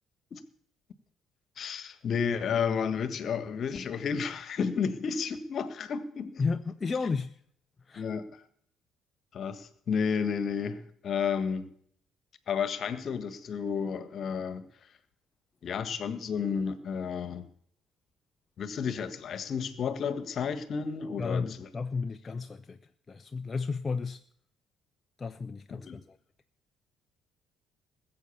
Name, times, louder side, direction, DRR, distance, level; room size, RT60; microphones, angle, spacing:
voice 1, 1.6-6.4 8.0-8.3 9.3-11.7 12.5-14.6 15.6-17.4 18.6-21.7 25.8-26.0, left 6 dB, 50° left, 12 dB, 1.5 m, -32 dB
voice 2, 6.4-7.3 7.9-8.1 21.2-22.8 23.1-24.2 25.2-26.2, left 4 dB, 30° left, 9 dB, 0.7 m, -33 dB
20.0 x 7.9 x 7.1 m, 0.65 s
figure-of-eight pair, 45°, 0 cm